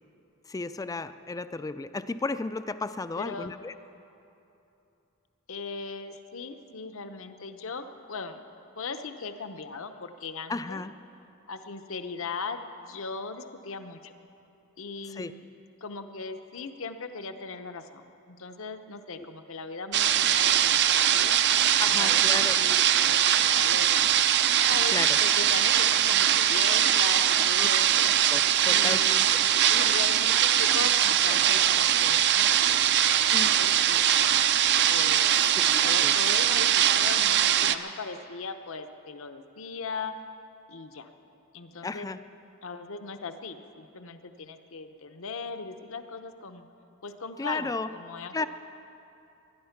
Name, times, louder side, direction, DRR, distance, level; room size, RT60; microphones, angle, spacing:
voice 1, 0.5-3.7 10.5-10.9 15.1-15.3 19.2-19.3 21.8-22.6 24.9-25.2 28.3-29.4 33.3-33.5 35.4-36.1 41.8-42.2 47.4-47.9 48.3-48.5, left 3 dB, 15° left, 12 dB, 0.3 m, -34 dB
voice 2, 3.2-3.5 5.5-8.4 8.8-10.8 11.5-14.1 14.8-15.5 15.8-21.4 21.9-23.9 24.7-28.1 28.6-29.3 29.7-32.5 33.0-34.0 34.9-40.1 40.7-41.1 41.5-42.1 42.6-46.7 47.0-48.5, left 4 dB, 65° left, 8 dB, 0.8 m, -38 dB
sound 1, 19.9-37.8, right 10 dB, 55° right, 0.5 m, -22 dB
21.0 x 11.0 x 5.9 m, 2.9 s
head